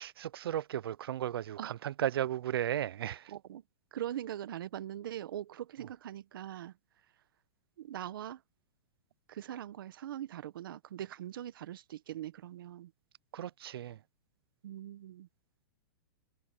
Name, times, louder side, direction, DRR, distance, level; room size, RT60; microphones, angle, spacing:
voice 1, 0.0-3.3 13.3-14.0, right 11 dB, 85° right, 0.6 m, -35 dB
voice 2, 3.3-3.6 3.9-6.8 7.8-8.4 9.3-12.9 14.6-15.3, right 11 dB, 65° right, 1.2 m, -41 dB
supercardioid pair, 170°, 12 cm